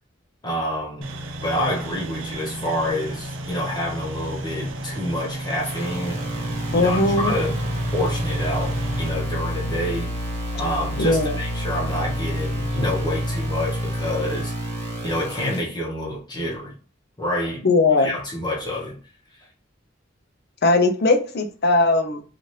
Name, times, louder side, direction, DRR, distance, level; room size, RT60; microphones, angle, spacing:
voice 1, 0.4-1.1 1.4-6.2 6.7-7.6 7.9-10.1 10.5-14.5 15.0-16.7 17.2-17.7 18.0-19.0, left 1 dB, 20° left, 0.8 m, -27 dB
sound 1, 1.0-9.1, right 2 dB, 75° right, 0.5 m, -33 dB
sound 2, 5.6-15.6, equal, 40° right, 1.2 m, -28 dB
voice 2, 6.7-7.3 11.0-11.4 17.6-18.1 20.6-22.2, left 3 dB, 55° left, 0.5 m, -19 dB
2.8 x 2.4 x 3.1 m
head